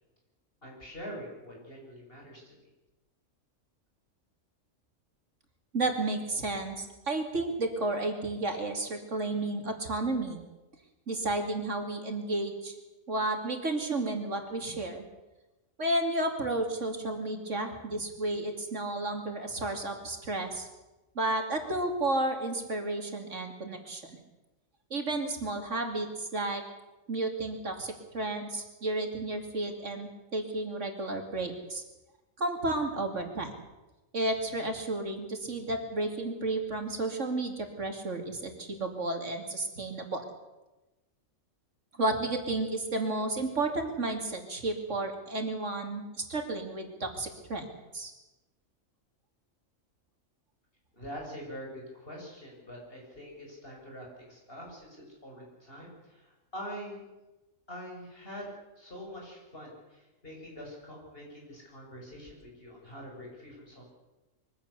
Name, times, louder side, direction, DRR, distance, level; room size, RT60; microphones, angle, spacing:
voice 1, 0.6-2.6 50.9-57.1 57.7-58.5 58.8-63.9, equal, 45° left, -1 dB, 7.0 m, -44 dB
voice 2, 5.7-10.4 11.1-12.7 13.1-15.0 15.8-20.7 21.1-24.0 24.9-26.6 27.1-31.8 32.4-33.5 34.1-40.2 42.0-47.7 47.9-48.1, right 2 dB, 65° right, 4 dB, 3.0 m, -32 dB
23.0 x 16.0 x 8.2 m, 1.1 s
omnidirectional pair, 1.4 m